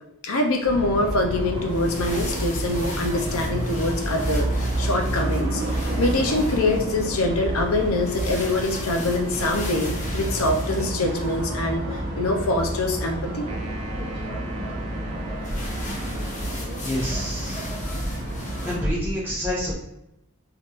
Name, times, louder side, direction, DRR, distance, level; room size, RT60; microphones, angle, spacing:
voice 1, 0.2-13.5, left 2 dB, 80° left, 3 dB, 0.6 m, -24 dB
sound 1, 0.6-18.9, right 1 dB, 50° right, 1.0 m, -29 dB
sound 2, 1.5-11.6 15.4-18.7, left 1 dB, 35° left, 0.7 m, -38 dB
sound 3, 13.5-16.8, right 1 dB, 30° right, 0.5 m, -39 dB
voice 2, 16.5-17.7 18.6-19.7, equal, 10° right, -8 dB, 1.2 m, -28 dB
3.4 x 2.8 x 2.5 m, 0.85 s
head